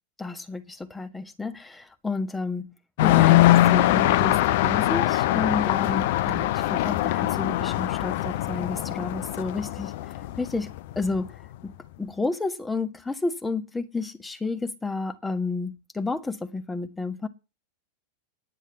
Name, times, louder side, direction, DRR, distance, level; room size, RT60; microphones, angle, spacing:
voice 1, 0.2-2.7 3.0-10.0 10.4-10.7 10.9-11.7 12.0-17.3, left 3 dB, 10° left, 1.5 m, -31 dB
sound 1, 3.0-11.3, left 15 dB, 50° left, 0.6 m, -22 dB
10.0 x 9.0 x 7.4 m
figure-of-eight pair, 90°, 0 cm